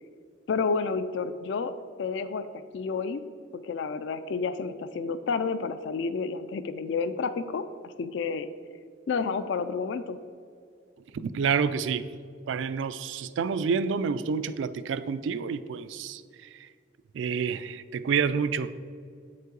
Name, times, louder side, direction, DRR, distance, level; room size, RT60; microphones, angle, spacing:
voice 1, 0.5-1.7 2.0-2.5 2.7-3.2 3.5-8.5 9.1-10.2, left 5 dB, 65° left, 0.3 m, -30 dB
voice 2, 11.1-12.0 12.5-16.2 17.1-18.8, right 6 dB, 70° right, 0.3 m, -28 dB
8.0 x 5.4 x 3.9 m
head